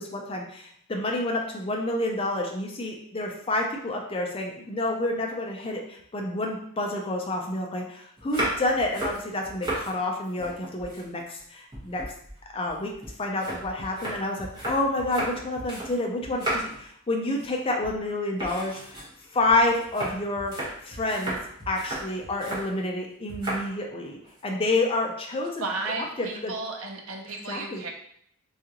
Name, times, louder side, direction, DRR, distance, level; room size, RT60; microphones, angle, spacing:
voice 1, 0.0-12.0 12.5-12.9 13.2-19.0 19.3-20.5 20.8-21.4 21.7-25.6 26.2-26.5 27.5-27.8, left 2 dB, 25° left, 1 dB, 0.4 m, -29 dB
sound 1, 8.2-9.9 10.2-11.4 11.7-15.9 16.2-16.9 17.2-17.6 17.8-18.0 18.4-22.7 23.3-23.7 24.0-24.4, right 1 dB, 20° right, 1.0 m, -34 dB
voice 2, 25.6-27.9, right 3 dB, 80° right, 2 dB, 0.6 m, -33 dB
3.7 x 2.4 x 2.8 m, 0.67 s
head